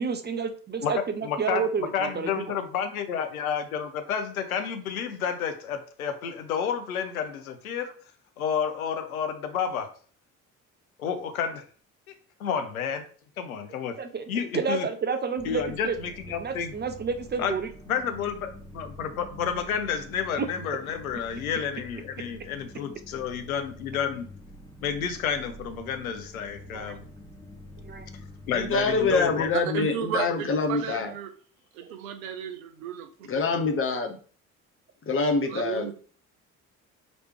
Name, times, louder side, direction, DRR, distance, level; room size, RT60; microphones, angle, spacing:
voice 1, 0.0-2.5 14.0-14.2 14.5-15.9 16.4-17.7 20.4-20.5 26.7-27.0 27.8-28.1, right 5 dB, 25° right, 8 dB, 0.6 m, -30 dB
voice 2, 1.2-1.7 1.9-7.9 8.4-9.9 11.0-11.6 12.4-13.1 13.4-14.0 14.3-14.9 15.4-16.7 17.4-17.5 17.9-24.3 24.8-27.0 28.5-29.5, left 7 dB, 80° left, 8 dB, 0.6 m, -30 dB
sound 1, 15.4-29.5, left 1 dB, 10° left, 1.0 m, -46 dB
voice 3, 28.5-31.1 33.3-34.2 35.1-35.9, left 4 dB, 30° left, 4 dB, 0.9 m, -25 dB
voice 4, 29.5-31.3 31.7-33.1 35.5-35.9, right 9 dB, 75° right, 8 dB, 0.7 m, -33 dB
5.1 x 3.2 x 3.0 m, 0.42 s
figure-of-eight pair, 50°, 42 cm